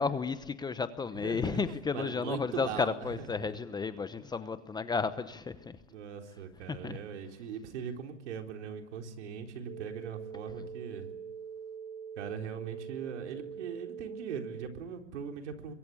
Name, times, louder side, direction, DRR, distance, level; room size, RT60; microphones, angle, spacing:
voice 1, 0.0-5.8 6.7-7.0 10.5-10.6, left 5 dB, 10° left, 0.9 m, -33 dB
voice 2, 1.1-1.6 1.9-3.5 5.9-11.1 12.2-15.7, right 7 dB, 70° right, 4.0 m, -40 dB
sound 1, 9.7-14.7, right 7 dB, 35° right, 4.0 m, -43 dB
25.5 x 23.0 x 8.6 m
hypercardioid pair, 125°, 37 cm